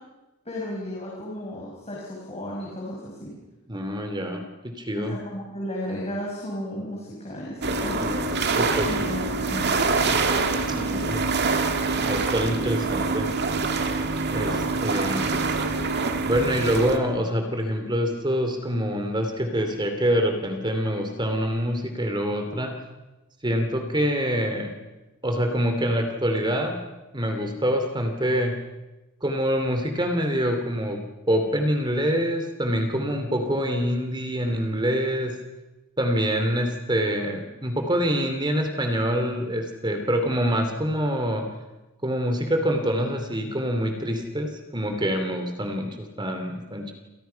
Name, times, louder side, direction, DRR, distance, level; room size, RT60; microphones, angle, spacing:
voice 1, 0.5-3.3 5.0-8.1 8.9-10.2 10.7-11.4, equal, 30° left, -3 dB, 5.8 m, -34 dB
voice 2, 3.7-5.2 8.0-8.1 8.6-9.1 10.7-11.2 12.1-13.3 14.3-15.4 16.3-22.8 23.4-24.8 25.2-26.8 27.1-28.6 29.2-35.4 36.0-41.5 42.0-46.9, equal, 20° right, 5 dB, 2.8 m, -25 dB
sound 1, 7.6-17.0, right 3 dB, 50° right, 2.3 m, -25 dB
29.0 x 28.0 x 5.8 m, 1.1 s
head